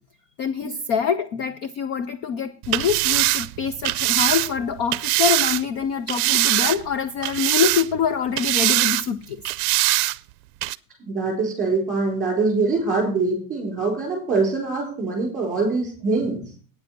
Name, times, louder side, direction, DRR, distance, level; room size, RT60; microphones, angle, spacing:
voice 1, 0.4-9.4, left 7 dB, 35° left, 0.4 m, -25 dB
sound 1, 2.6-5.6 6.1-6.9 7.2-8.1 8.4-9.0 9.4-10.2 10.6-10.7, right 21 dB, 70° right, 0.6 m, -22 dB
voice 2, 11.1-16.4, right 3 dB, 15° right, 4.5 m, -23 dB
9.4 x 7.9 x 5.8 m
cardioid pair, 170°, 46 cm